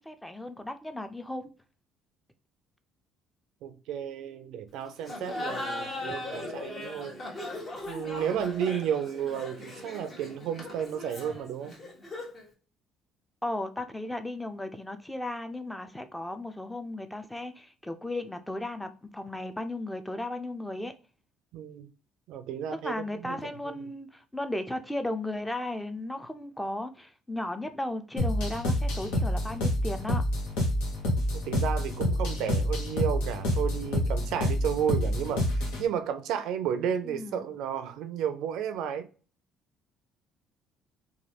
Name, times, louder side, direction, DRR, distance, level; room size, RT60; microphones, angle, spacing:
voice 1, 0.0-1.5 13.4-20.9 22.7-30.2 37.0-37.5, left 1 dB, 10° left, 0.5 m, -35 dB
voice 2, 3.6-7.2 7.9-11.8 21.5-21.9 22.3-23.4 23.6-23.8 31.3-39.1, right 8 dB, 75° right, 0.4 m, -32 dB
Laughter, 5.0-12.5, left 2 dB, 45° left, 1.3 m, -38 dB
sound 1, 28.2-35.8, left 1 dB, 80° left, 0.9 m, -28 dB
3.1 x 2.3 x 2.8 m
supercardioid pair, 75°, 0 cm